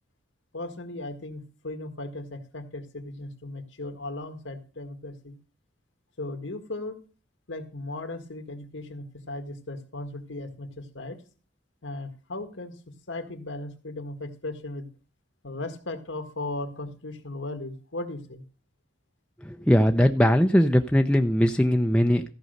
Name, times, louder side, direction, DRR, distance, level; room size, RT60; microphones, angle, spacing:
voice 1, 0.5-5.4 6.2-7.0 7.5-11.2 11.8-14.9 15.4-18.4, left 2 dB, 90° left, 7 dB, 1.7 m, -37 dB
voice 2, 19.4-22.2, equal, 5° left, 4 dB, 0.5 m, -20 dB
14.0 x 5.3 x 6.6 m, 0.37 s
head